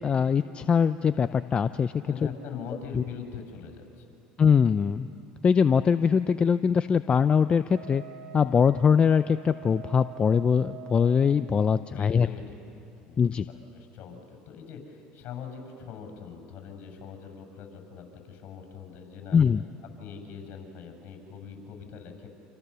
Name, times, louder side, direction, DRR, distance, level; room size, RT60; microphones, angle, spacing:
voice 1, 0.0-1.9 2.9-3.0 4.4-5.1 5.4-8.0 8.3-12.3 13.2-13.5 19.3-19.6, left 6 dB, 30° left, 12 dB, 0.6 m, -22 dB
voice 2, 2.1-4.2 11.9-13.2 13.5-19.4 20.0-22.3, left 6 dB, 60° left, 4 dB, 6.9 m, -42 dB
Wind instrument woodwind instrument, 7.7-11.4, right 10 dB, 85° right, 3.8 m, -46 dB
29.5 x 27.5 x 6.9 m, 2.7 s
supercardioid pair, 95°, 3 cm